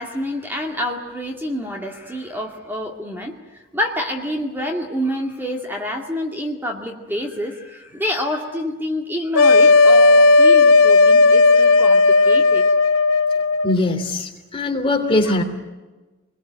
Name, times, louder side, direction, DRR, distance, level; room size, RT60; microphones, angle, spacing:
voice 1, 0.0-12.7 15.2-15.3, left 1 dB, 10° right, 2 dB, 2.2 m, -27 dB
sound 1, 9.3-13.8, left 3 dB, 85° left, 0.8 m, -13 dB
voice 2, 13.6-15.4, left 2 dB, 25° left, 3 dB, 3.1 m, -21 dB
27.0 x 22.0 x 8.9 m, 1.2 s
head